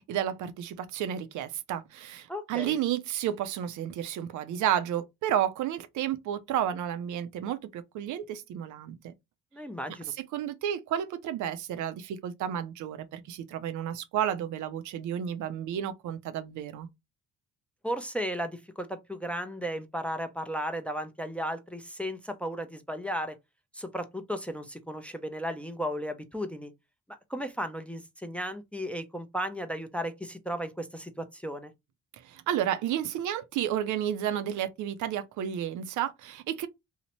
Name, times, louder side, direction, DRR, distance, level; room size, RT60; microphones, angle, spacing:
voice 1, 0.1-9.1 10.3-16.9 32.2-36.7, right 10 dB, 75° right, 0.5 m, -31 dB
voice 2, 2.3-2.8 9.5-10.1 17.8-23.4 23.7-26.7 27.1-31.7, equal, 5° left, 0.4 m, -35 dB
2.7 x 2.1 x 2.9 m
cardioid pair, 90°, 30 cm